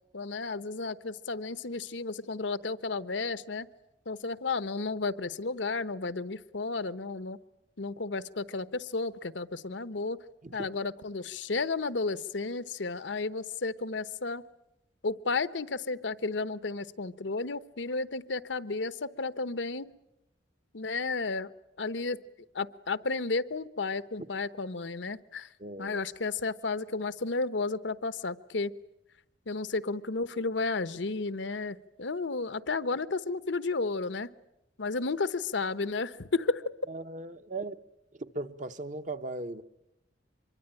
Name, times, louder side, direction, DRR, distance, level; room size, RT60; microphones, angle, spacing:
voice 1, 0.1-3.7 4.1-7.4 7.8-10.2 10.5-14.4 15.0-19.9 20.7-21.5 21.8-22.2 22.5-25.5 25.8-28.7 29.5-34.3 34.8-36.7, left 3 dB, 80° left, 1.0 m, -32 dB
voice 2, 25.6-26.0 36.9-37.8 38.2-39.6, right 2 dB, 40° right, 1.0 m, -38 dB
25.5 x 23.0 x 8.9 m
head